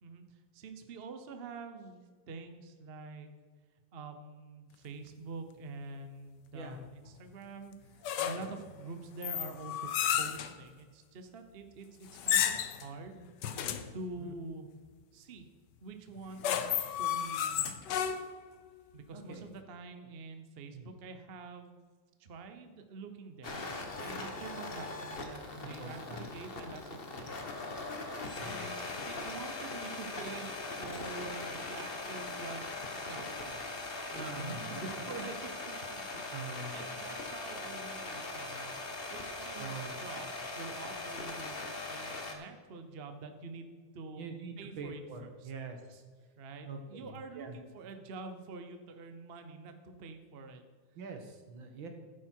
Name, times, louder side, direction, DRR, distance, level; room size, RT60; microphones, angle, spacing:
voice 1, 0.0-2.0 2.3-3.3 3.9-7.7 8.2-13.3 13.9-14.7 15.1-15.5 15.8-18.0 18.9-21.8 22.2-23.6 24.0-27.6 28.4-30.5 30.8-33.8 34.4-38.7 39.1-44.3 44.6-45.5 46.4-50.6, right 3 dB, 40° right, 7 dB, 0.9 m, -46 dB
sound 1, 8.0-8.6 9.2-10.5 12.1-12.9 13.4-13.9 16.2-18.5, left 9 dB, 65° left, 1.3 m, -32 dB
voice 2, 19.1-19.4 20.7-20.9 25.8-26.3 28.4-28.6 34.1-34.8 36.3-36.8 39.6-39.9 44.1-46.0 46.7-47.1 47.4-47.6 51.0-51.9, right 4 dB, 75° right, 5 dB, 2.2 m, -44 dB
sound 2, 23.4-42.4, left 3 dB, 30° left, 1.3 m, -40 dB
11.5 x 9.4 x 4.6 m, 1.5 s
omnidirectional pair, 2.2 m